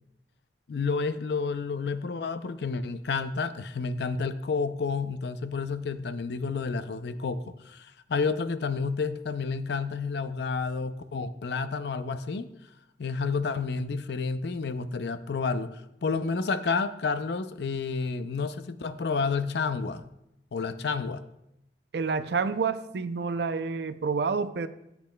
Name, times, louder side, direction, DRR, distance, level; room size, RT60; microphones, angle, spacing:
voice 1, 0.7-12.5 13.0-20.0 20.5-21.2, left 4 dB, 70° left, 12 dB, 0.5 m, -30 dB
voice 2, 21.9-24.7, right 5 dB, 65° right, 12 dB, 0.5 m, -28 dB
13.5 x 8.2 x 2.2 m, 0.85 s
head